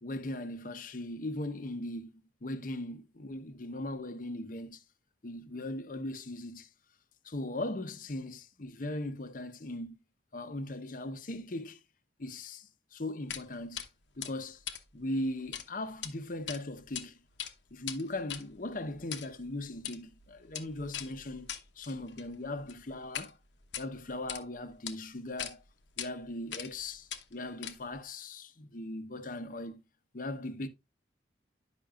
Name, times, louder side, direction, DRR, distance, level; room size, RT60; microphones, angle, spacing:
voice 1, 0.0-4.8 5.2-6.7 7.2-10.0 10.3-11.8 12.2-13.8 14.2-14.6 14.9-17.2 17.7-21.5 21.8-23.4 23.8-25.6 26.0-29.8 30.1-30.7, left 1 dB, 45° left, 0.8 m, -39 dB
sound 1, 13.3-13.5 13.8-13.9 14.2-15.7 15.9-16.1 16.5-17.0 17.3-23.3 23.6-24.4 24.9-25.0 25.4-25.5 26.0-26.1 26.5-26.8 27.1-28.0, left 10 dB, 80° left, 1.0 m, -41 dB
10.0 x 6.0 x 2.4 m
head